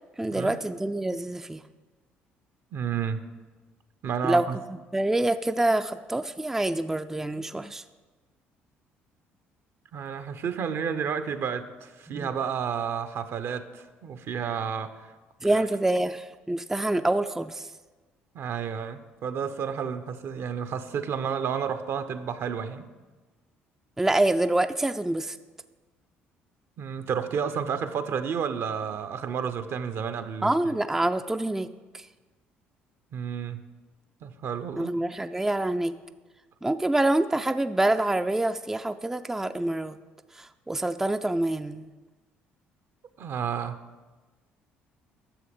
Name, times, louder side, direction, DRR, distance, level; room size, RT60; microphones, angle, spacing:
voice 1, 0.2-1.6 4.2-7.8 12.1-12.3 15.4-17.7 24.0-25.4 30.4-31.7 31.9-32.0 34.8-36.0 36.6-40.0 40.4-41.9, right 1 dB, 10° right, 9 dB, 0.4 m, -26 dB
voice 2, 2.7-3.3 4.0-4.6 9.9-15.1 15.4-15.6 18.3-22.9 26.8-30.5 33.1-33.6 34.2-35.0 43.2-43.8, right 7 dB, 55° right, 11 dB, 0.7 m, -31 dB
10.0 x 7.0 x 5.1 m, 1.3 s
hypercardioid pair, 60°, 5 cm